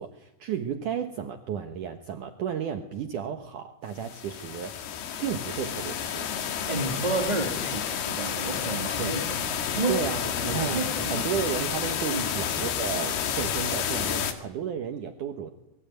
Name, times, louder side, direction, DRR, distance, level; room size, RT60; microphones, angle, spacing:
voice 1, 0.0-4.7 5.2-6.3 9.0-9.2 9.9-15.5, right 8 dB, 65° right, 6 dB, 2.3 m, -33 dB
sound 1, 4.0-14.3, left 8 dB, 70° left, 3.8 m, -30 dB
voice 2, 6.7-9.2 9.7-10.0 10.4-11.1 12.1-12.3, right 3 dB, 15° right, 1 dB, 1.7 m, -30 dB
26.0 x 23.0 x 9.2 m, 0.93 s
omnidirectional pair, 4.8 m